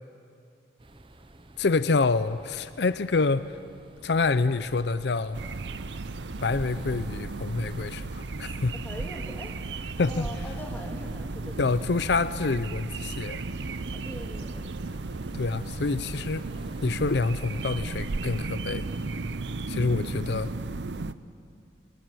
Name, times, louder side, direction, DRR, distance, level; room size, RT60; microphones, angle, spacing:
sound 1, 0.8-19.8, right 1 dB, 30° right, 1.0 m, -51 dB
voice 1, 1.6-3.6 4.0-5.4 6.4-8.7 10.0-10.3 11.6-13.4 15.3-16.4 16.8-18.9 19.7-20.5, left 3 dB, 75° left, 14 dB, 0.6 m, -27 dB
sound 2, 5.3-21.1, right 3 dB, 85° right, 0.7 m, -35 dB
voice 2, 8.8-9.6 10.1-11.8 13.9-14.7 15.3-15.5, equal, 10° left, 1 dB, 2.3 m, -42 dB
21.5 x 20.5 x 9.3 m, 2.4 s
head